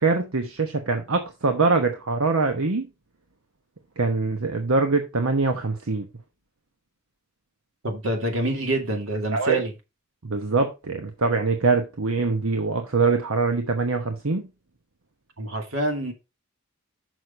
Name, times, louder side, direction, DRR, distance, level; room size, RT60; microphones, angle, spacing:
voice 1, 0.0-2.9 4.0-6.1 9.3-9.6 10.2-14.5, right 3 dB, 85° right, 1.1 m, -23 dB
voice 2, 7.8-9.7 15.4-16.1, right 2 dB, 70° right, 2.3 m, -26 dB
6.4 x 6.3 x 5.2 m
head